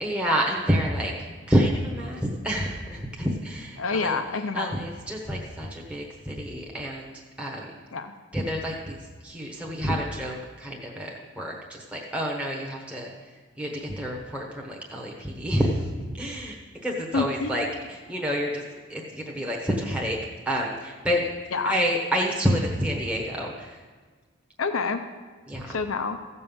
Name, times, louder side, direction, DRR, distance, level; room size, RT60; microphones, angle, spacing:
voice 1, 0.0-1.1 1.5-4.2 4.5-7.7 8.3-9.0 9.2-11.1 11.4-13.1 13.6-15.8 16.2-16.5 16.8-17.7 18.1-18.6 18.9-20.2 20.5-21.3 21.6-23.7 25.5-25.8, equal, 5° right, -2 dB, 1.1 m, -28 dB
voice 2, 3.8-4.9 7.9-8.1 17.1-17.8 21.5-21.8 24.6-25.0 25.7-26.2, left 4 dB, 75° left, 8 dB, 0.7 m, -28 dB
15.0 x 5.4 x 7.1 m, 1.4 s
head